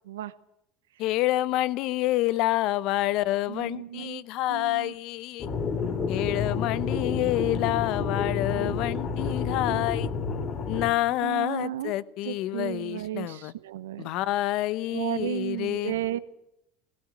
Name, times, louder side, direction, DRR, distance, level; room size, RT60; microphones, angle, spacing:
voice 1, 1.0-5.5 6.1-10.1 10.7-13.5 14.0-15.9, left 16 dB, 65° left, 18 dB, 0.9 m, -28 dB
voice 2, 3.5-4.2 4.5-4.9 7.4-7.7 8.5-8.8 9.7-9.9 11.2-11.9 12.2-14.1 14.9-16.2, right 12 dB, 90° right, 15 dB, 0.9 m, -34 dB
sound 1, 5.4-10.9, left 5 dB, 45° left, 2.4 m, -29 dB
17.5 x 17.5 x 9.7 m, 0.82 s
hypercardioid pair, 85°, 0 cm